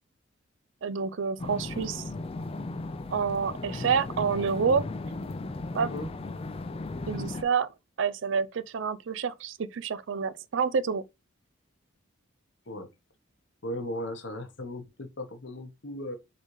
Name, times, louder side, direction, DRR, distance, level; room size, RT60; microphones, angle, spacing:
voice 1, 0.8-2.0 3.1-4.8 5.7-5.9 7.1-7.7 8.0-11.0, right 6 dB, 65° right, 0.4 m, -28 dB
sound 1, 1.4-7.4, left 2 dB, 30° left, 0.4 m, -36 dB
voice 2, 5.8-6.1 12.7-12.9 13.6-16.2, left 1 dB, 60° left, 1.0 m, -37 dB
4.2 x 3.9 x 3.1 m
head